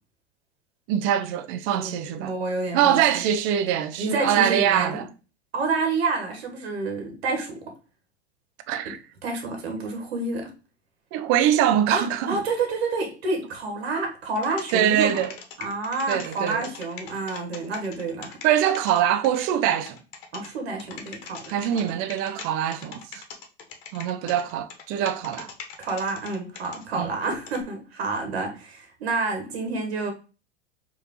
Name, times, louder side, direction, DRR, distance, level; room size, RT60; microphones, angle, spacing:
voice 1, 0.9-2.3 2.7-5.1 8.7-9.0 11.1-12.4 14.7-15.3 16.1-16.7 18.4-20.0 21.5-23.2 23.9-25.5 26.9-27.1, right 10 dB, 40° right, 0.5 m, -23 dB
voice 2, 1.8-3.0 4.0-5.1 5.5-7.7 8.8-8.9 9.2-10.5 11.9-15.2 15.6-18.4 20.3-21.4 21.7-21.8 25.8-30.1, right 3 dB, 70° right, 1.2 m, -29 dB
sound 1, 14.4-19.5 19.9-20.5 20.8-22.4 22.7-26.8 27.5-27.6, left 6 dB, 55° left, 1.1 m, -40 dB
4.9 x 2.8 x 2.9 m
figure-of-eight pair, 85°, 32 cm